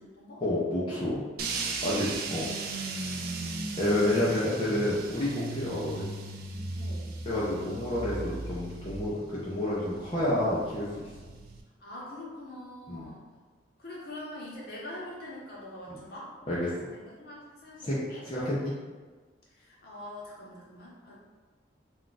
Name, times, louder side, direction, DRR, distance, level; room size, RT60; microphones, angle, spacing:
voice 1, 0.4-1.2 1.8-2.5 3.8-6.0 7.3-11.1 12.9-13.1 15.9-16.0 16.5-16.7 17.8-18.7, left 1 dB, 25° left, -9 dB, 0.4 m, -29 dB
sound 1, 1.4-11.6, right 3 dB, 50° right, 0.3 m, -37 dB
voice 2, 11.8-13.3 13.8-16.3 17.2-18.2 19.6-21.2, left 1 dB, 50° left, -5 dB, 0.8 m, -43 dB
2.3 x 2.3 x 3.9 m, 1.4 s
head